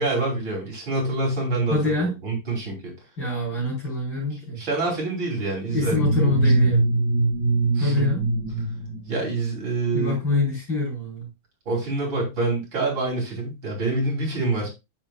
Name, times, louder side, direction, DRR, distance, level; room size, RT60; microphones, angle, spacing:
voice 1, 0.0-1.8 2.2-2.9 4.6-6.2 7.7-8.1 9.1-10.2 11.7-14.7, right 3 dB, 65° right, -2 dB, 4.0 m, -26 dB
voice 2, 1.7-2.1 3.2-4.6 5.7-6.9 7.8-8.3 9.9-11.3, left 2 dB, 60° left, -2 dB, 5.4 m, -25 dB
sound 1, 5.7-9.8, right 2 dB, 45° left, 4.7 m, -23 dB
8.7 x 7.4 x 2.4 m, 0.25 s
omnidirectional pair, 2.3 m